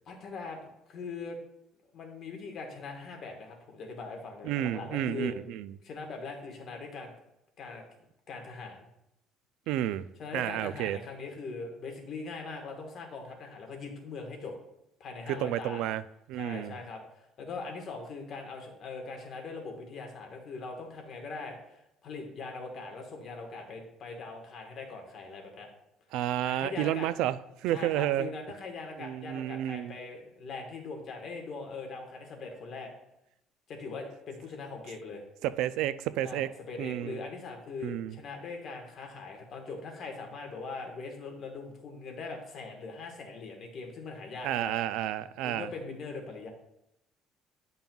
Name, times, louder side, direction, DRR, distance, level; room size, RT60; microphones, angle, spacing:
voice 1, 0.1-1.4 1.9-5.4 5.8-7.1 7.6-7.8 8.3-8.9 10.2-14.5 15.0-15.8 16.4-25.7 26.4-27.1 27.7-32.9 33.7-35.2 36.2-44.7 45.4-46.5, left 4 dB, 50° left, 1.4 m, -41 dB
voice 2, 4.4-5.7 9.7-10.1 10.3-11.0 15.3-16.0 16.3-16.8 26.1-28.3 29.0-30.0 35.4-37.2 37.8-38.2 44.4-45.7, right 12 dB, 80° right, 0.3 m, -31 dB
10.5 x 5.3 x 2.3 m
cardioid pair, 125°, 0 cm